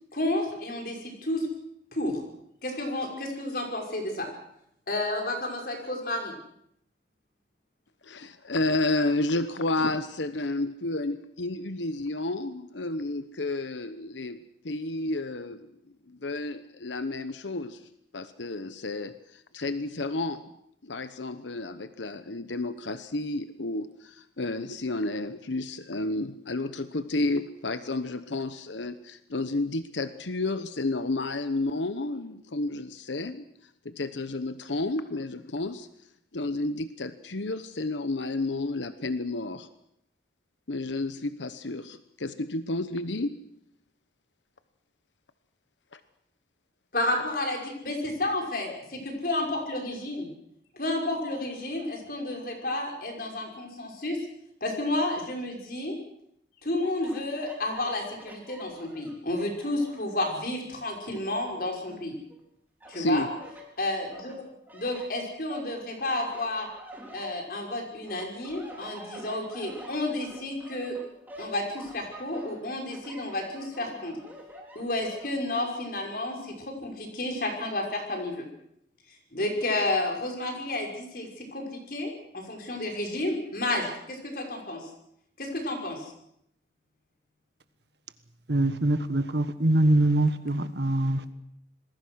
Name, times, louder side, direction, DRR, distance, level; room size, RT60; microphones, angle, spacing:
voice 1, 0.1-1.5 1.9-2.2 2.6-4.3 4.9-6.3 46.9-50.3 50.7-54.2 54.6-55.9 56.6-62.1 62.9-63.3 63.8-64.4 64.7-66.7 67.1-71.0 71.4-74.1 74.7-78.5 79.3-84.8 85.4-86.1, left 1 dB, 50° left, 5.8 m, -31 dB
voice 2, 8.0-14.4 14.6-15.7 16.1-20.4 20.8-33.5 33.8-35.9 36.3-39.7 40.7-43.4 45.9-46.0 62.9-63.3, left 2 dB, 80° left, 1.0 m, -31 dB
sound 1, 56.7-60.2 60.6-62.4 62.8-63.7 64.1-67.7 68.1-75.7, equal, 10° right, 4.2 m, -47 dB
voice 3, 88.5-91.3, right 1 dB, 65° right, 1.5 m, -24 dB
27.0 x 20.5 x 6.4 m
head